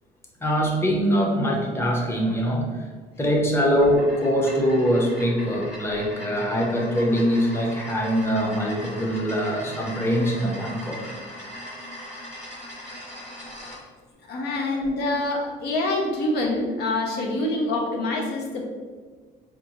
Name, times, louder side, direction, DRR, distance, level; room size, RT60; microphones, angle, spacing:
voice 1, 0.4-2.8 3.2-11.1 14.3-14.8, equal, 15° left, -1 dB, 0.7 m, -23 dB
sound 1, 3.7-13.8, equal, 40° left, 1.5 m, -39 dB
voice 2, 14.3-18.6, left 2 dB, 80° left, 1 dB, 0.7 m, -26 dB
5.1 x 2.4 x 2.9 m, 1.5 s
cardioid pair, 110°, 17 cm